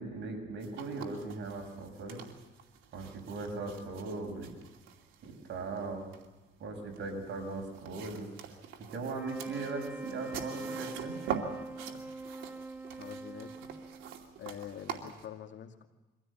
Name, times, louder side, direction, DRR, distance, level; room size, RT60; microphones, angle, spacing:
voice 1, 0.0-2.2 2.9-4.5 5.2-6.1 6.6-8.3 8.9-11.2, right 3 dB, 70° right, 3 dB, 6.7 m, -39 dB
sound 1, 0.6-15.3, right 7 dB, 90° right, 2.7 m, -45 dB
sound 2, 9.0-14.5, right 3 dB, 10° right, 1.5 m, -43 dB
voice 2, 11.9-12.3 13.0-13.7 14.4-15.9, left 9 dB, 70° left, 4 dB, 2.4 m, -46 dB
24.0 x 16.0 x 8.9 m, 1.2 s
cardioid pair, 90°, 20 cm